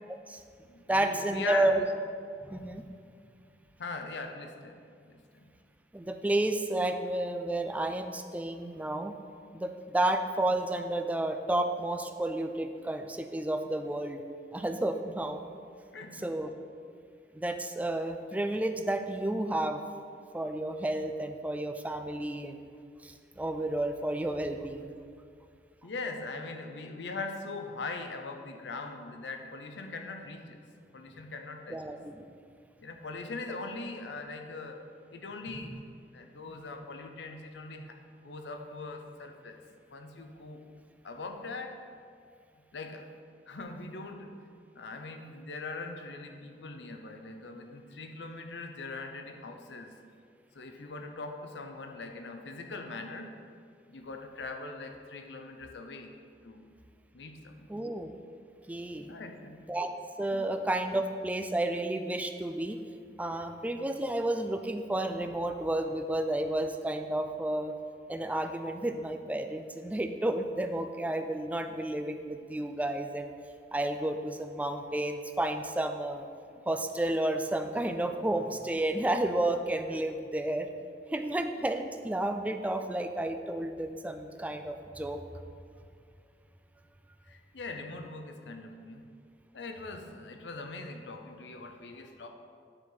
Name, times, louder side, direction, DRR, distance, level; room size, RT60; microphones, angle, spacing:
voice 1, 0.1-0.4 0.9-1.8 2.4-2.9 5.9-9.1 9.5-14.2 14.5-15.4 16.1-16.5 17.3-19.8 20.3-22.7 23.0-24.9 31.7-32.2 57.7-58.1 58.7-59.1 59.7-59.9 60.2-62.8 63.2-67.7 68.1-73.3 73.7-76.3 76.7-80.7 81.1-85.2, right 1 dB, 10° right, 7 dB, 0.3 m, -31 dB
voice 2, 0.6-1.9 3.8-5.5 15.9-16.3 25.8-30.6 30.9-32.0 32.8-34.8 35.1-35.7 36.1-38.0 38.2-39.6 39.9-40.6 41.0-41.8 42.7-43.1 43.5-50.0 50.5-53.4 53.9-56.2 56.4-56.7 57.1-57.8 59.1-59.6 60.3-60.6 87.3-89.1 89.5-92.3, left 3 dB, 85° left, 5 dB, 0.7 m, -41 dB
9.8 x 4.5 x 3.9 m, 2.3 s
head